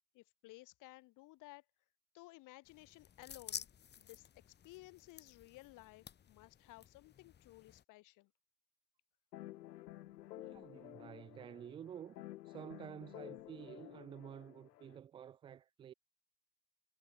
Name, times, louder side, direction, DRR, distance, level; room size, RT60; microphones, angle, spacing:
voice 1, 0.1-1.6 2.1-3.7 4.0-4.3 4.6-8.3, left 20 dB, 40° left, 2.8 m, -57 dB
sound 1, 2.6-7.8, left 9 dB, 20° left, 2.2 m, -52 dB
sound 2, 9.3-15.0, left 15 dB, 85° left, 1.1 m, -52 dB
voice 2, 10.4-15.9, right 9 dB, 10° right, 0.4 m, -51 dB
supercardioid pair, 135°, 47 cm